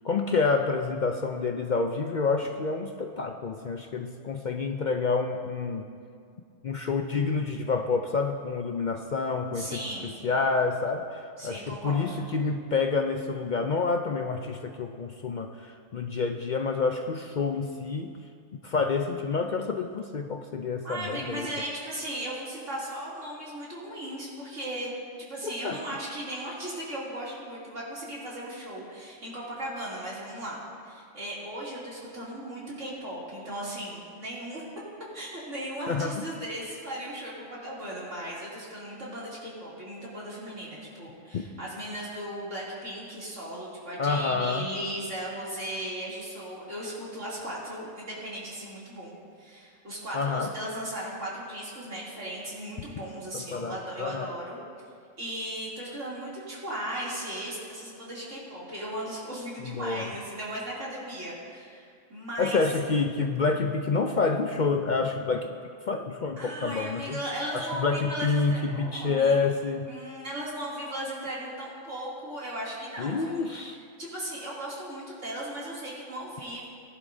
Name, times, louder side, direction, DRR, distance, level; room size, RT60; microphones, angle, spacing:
voice 1, 0.0-5.9 6.6-18.1 18.6-21.5 25.6-25.8 35.9-36.2 44.0-44.7 50.1-50.5 53.3-54.3 59.7-60.1 62.4-65.5 65.9-67.2 67.5-69.9 73.0-73.8, left 4 dB, 55° left, 4 dB, 0.5 m, -28 dB
voice 2, 9.5-10.1 11.4-12.2 20.8-24.9 25.2-34.6 35.1-54.6 55.2-62.6 66.4-69.4 69.9-73.7 74.0-76.6, right 1 dB, 70° right, -7 dB, 3.2 m, -37 dB
19.0 x 11.0 x 2.7 m, 2.3 s
omnidirectional pair, 1.3 m